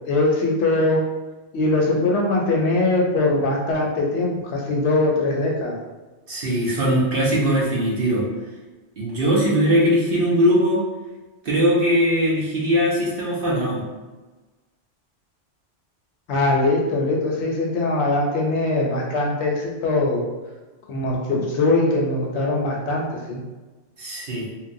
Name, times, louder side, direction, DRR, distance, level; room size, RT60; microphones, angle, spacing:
voice 1, 0.1-1.0 1.5-5.8 16.3-20.3 20.9-23.4, left 2 dB, 70° left, -1 dB, 0.8 m, -21 dB
voice 2, 6.3-8.2 9.0-10.8 11.4-13.8 24.0-24.5, equal, 55° right, -5 dB, 0.8 m, -20 dB
3.1 x 2.1 x 2.5 m, 1.2 s
omnidirectional pair, 1.2 m